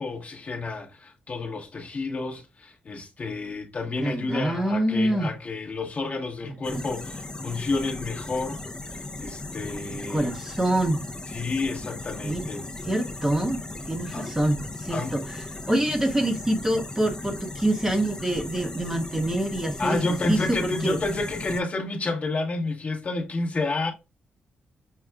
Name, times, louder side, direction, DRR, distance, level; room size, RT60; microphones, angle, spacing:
voice 1, 0.0-8.6 9.2-10.3 11.3-12.7 14.1-14.3 14.9-15.2 19.8-23.9, left 3 dB, 40° left, 1.0 m, -30 dB
voice 2, 4.0-5.3 6.5-6.8 9.9-11.0 12.2-12.5 12.8-13.6 13.9-15.4 15.7-21.0, right 1 dB, 15° right, 0.8 m, -26 dB
sound 1, 6.6-21.6, left 2 dB, 20° left, 0.6 m, -37 dB
6.5 x 2.3 x 2.2 m
cardioid pair, 85°, 4 cm